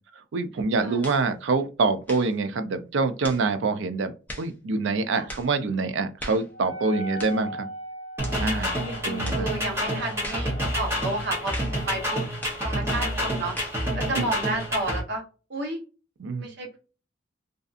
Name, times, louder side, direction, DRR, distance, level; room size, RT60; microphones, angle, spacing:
voice 1, 0.3-7.7 8.4-8.8 9.0-9.5 14.2-14.3 16.2-16.5, right 3 dB, 75° right, 0.4 m, -26 dB
sound 1, 1.0-1.3 2.0-2.3 3.2-3.5 4.3-4.5 5.3-5.5 6.2-6.5 7.2-7.4 8.2-8.4 9.2-9.5 10.2-10.5 11.5-11.8 12.4-12.7 13.6-13.8, left 1 dB, 10° left, 0.4 m, -39 dB
Wind instrument woodwind instrument, 6.5-12.3, right 1 dB, 85° left, 0.5 m, -40 dB
sound 2, 8.2-15.0, equal, 15° right, 0.8 m, -28 dB
voice 2, 8.7-12.2 12.5-13.5 13.9-15.2 15.5-15.8 16.4-16.8, right 2 dB, 60° right, 0.8 m, -31 dB
2.6 x 2.4 x 2.4 m
head